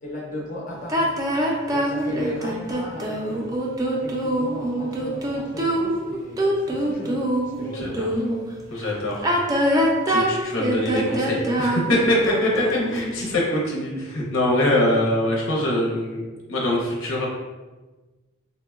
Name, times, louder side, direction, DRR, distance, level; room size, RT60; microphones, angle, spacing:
voice 1, 0.0-7.2 7.6-7.9, left 1 dB, 40° left, -4 dB, 0.5 m, -36 dB
sound 1, 0.9-8.4 9.1-13.1, right 1 dB, 20° right, 0.3 m, -24 dB
voice 2, 7.6-8.1 8.7-9.2 10.1-12.6 12.9-17.3, left 1 dB, 80° left, -3 dB, 0.7 m, -23 dB
3.7 x 2.1 x 2.3 m, 1.2 s
head